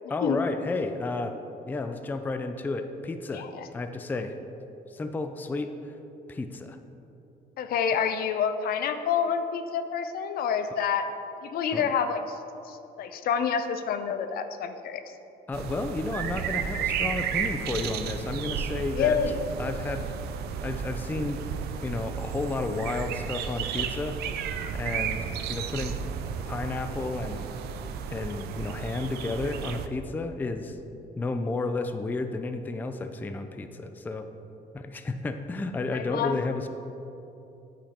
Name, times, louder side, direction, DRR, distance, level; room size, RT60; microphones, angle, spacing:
voice 1, 0.1-1.4 1.7-3.5 3.7-4.4 4.9-6.0 6.3-6.8 11.7-11.9 15.5-19.2 19.6-20.0 20.6-21.4 21.8-24.2 24.8-26.0 26.5-27.5 28.1-30.8 31.2-34.3 34.7-36.7, left 3 dB, 10° left, 8 dB, 0.3 m, -32 dB
voice 2, 3.3-3.7 7.6-11.1 11.4-12.4 12.6-15.0 18.9-19.4 35.9-36.4, left 7 dB, 65° left, 9 dB, 0.5 m, -28 dB
sound 1, 15.5-29.9, right 7 dB, 70° right, 0.5 m, -33 dB
8.6 x 5.1 x 4.3 m, 3.0 s
cardioid pair, 110°, 17 cm